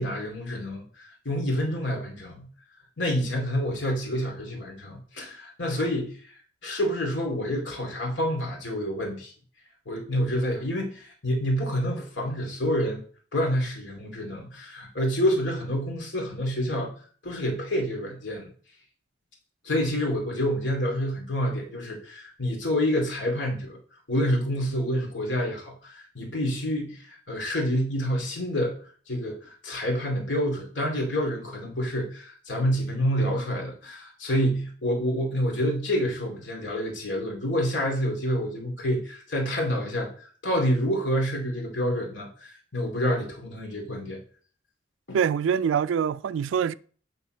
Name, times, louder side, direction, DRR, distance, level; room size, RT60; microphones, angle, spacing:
voice 1, 0.0-2.5 3.0-6.3 6.6-9.3 9.9-13.0 13.3-16.9 17.2-18.5 19.6-23.8 24.1-28.7 29.1-44.2 45.1-45.2, equal, 75° left, 2.5 m, -28 dB
voice 2, 45.1-46.7, right 7 dB, 85° right, 0.3 m, -24 dB
8.4 x 4.1 x 4.3 m
head